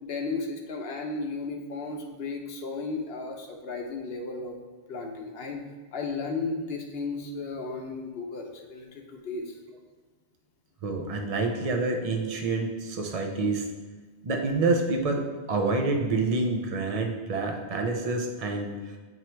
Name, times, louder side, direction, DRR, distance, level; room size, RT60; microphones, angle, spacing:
voice 1, 0.0-4.6 4.9-5.6 5.9-9.5, left 3 dB, 65° left, 3 dB, 1.0 m, -34 dB
voice 2, 10.8-13.6 14.2-18.7, right 3 dB, 40° right, 3 dB, 0.7 m, -27 dB
7.9 x 3.1 x 4.5 m, 1.3 s
omnidirectional pair, 1.1 m